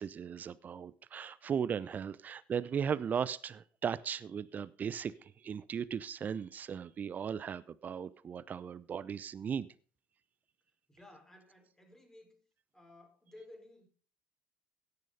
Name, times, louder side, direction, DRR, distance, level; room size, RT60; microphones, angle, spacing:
voice 1, 0.0-9.7, right 7 dB, 40° right, 0.7 m, -37 dB
voice 2, 10.9-12.4 12.7-13.9, left 1 dB, 15° left, 5.0 m, -56 dB
16.5 x 6.7 x 5.2 m
hypercardioid pair, 60°, 4 cm